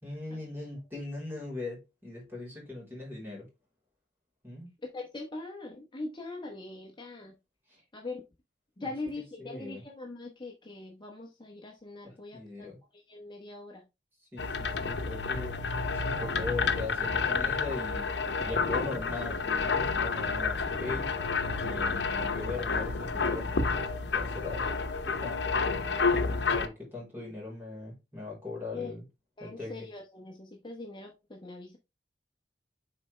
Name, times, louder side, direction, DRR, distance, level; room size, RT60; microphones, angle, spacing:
voice 1, 0.0-3.5 4.4-4.7 7.7-7.8 8.8-8.9 9.4-9.8 12.1-12.8 14.3-15.6 15.9-18.1 18.4-21.1 21.6-23.7 24.0-24.7 25.0-25.8 26.3-29.0 29.4-29.9, left 3 dB, 15° right, 3.6 m, -40 dB
voice 2, 4.8-7.4 7.9-8.2 8.8-12.7 12.9-13.8 21.8-22.0 28.7-28.9 29.4-31.8, left 2 dB, 25° left, 1.0 m, -42 dB
sound 1, 14.4-26.7, left 4 dB, 75° left, 0.9 m, -30 dB
6.9 x 4.4 x 3.3 m
head